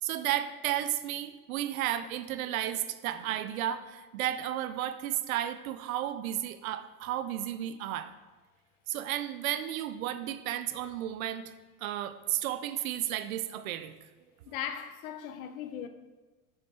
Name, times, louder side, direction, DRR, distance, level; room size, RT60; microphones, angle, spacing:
voice 1, 0.0-8.1 8.9-11.5 11.8-13.9, right 12 dB, 70° right, 0.7 m, -33 dB
voice 2, 14.5-15.9, left 9 dB, 70° left, 0.9 m, -38 dB
6.5 x 6.4 x 4.3 m
hypercardioid pair, 95°, 44 cm